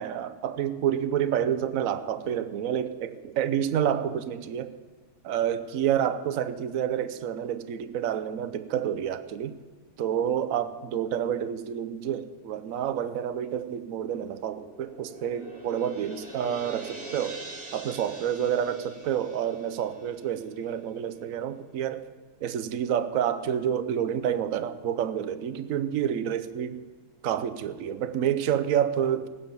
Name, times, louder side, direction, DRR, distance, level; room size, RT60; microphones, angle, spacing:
voice 1, 0.0-4.7 5.2-9.6 10.0-17.4 17.7-22.1 22.4-26.8 27.2-29.3, right 9 dB, 60° right, 12 dB, 0.9 m, -29 dB
sound 1, 14.4-20.9, right 2 dB, 30° right, 1.6 m, -44 dB
18.5 x 9.7 x 7.2 m, 1.3 s
omnidirectional pair, 2.4 m